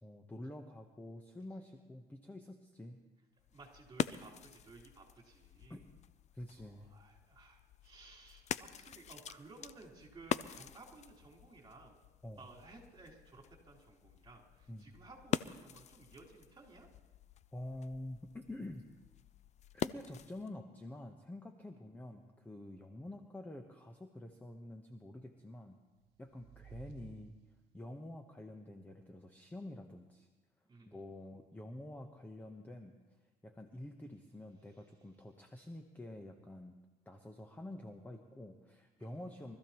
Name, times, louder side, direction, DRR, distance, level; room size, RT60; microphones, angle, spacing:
voice 1, 0.0-3.0 5.7-5.8 6.3-7.0 12.2-12.4 14.7-14.9 17.5-18.9 19.7-25.8 26.2-27.3 27.7-30.3 30.9-32.9 33.4-36.7 37.1-39.6, left 1 dB, 10° left, 5 dB, 0.9 m, -48 dB
sound 1, 3.4-20.5, left 9 dB, 45° left, 0.4 m, -44 dB
voice 2, 3.5-5.9 6.6-12.0 12.4-16.9 30.7-31.0 39.0-39.6, right 3 dB, 25° right, -4 dB, 4.1 m, -57 dB
sound 2, 25.7-28.0, right 7 dB, 80° right, 0.9 m, -57 dB
24.0 x 14.0 x 3.0 m, 1.2 s
cardioid pair, 110°, 17 cm